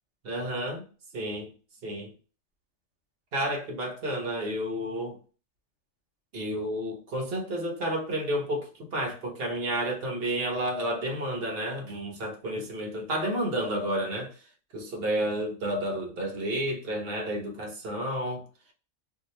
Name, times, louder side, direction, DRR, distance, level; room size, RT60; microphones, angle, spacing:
voice 1, 0.2-0.9 1.1-1.5 1.8-2.1 3.3-5.2 6.3-14.3 14.7-18.4, right 1 dB, 50° right, 0.9 m, -31 dB
2.7 x 2.7 x 3.0 m
omnidirectional pair, 1.4 m